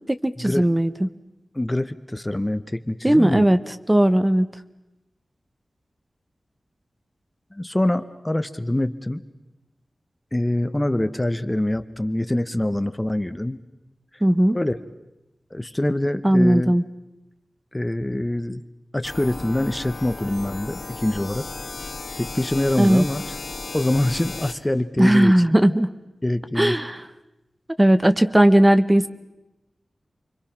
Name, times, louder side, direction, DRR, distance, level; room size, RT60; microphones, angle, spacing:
voice 1, 0.1-1.1 3.0-3.6 3.9-4.5 14.2-14.6 16.2-16.8 22.8-23.0 25.0-25.9 26.6-27.0 27.8-29.1, right 1 dB, 15° right, 10 dB, 0.9 m, -17 dB
voice 2, 1.5-3.5 7.5-9.2 10.3-13.6 14.5-14.8 15.5-16.8 17.7-18.6 18.9-21.5 22.2-23.3 23.7-25.3 26.2-26.8, left 1 dB, 15° left, 10 dB, 0.9 m, -24 dB
sound 1, 19.0-24.5, left 3 dB, 75° left, 2.6 m, -35 dB
29.5 x 23.5 x 5.9 m, 0.96 s
wide cardioid pair, 105°, 0 cm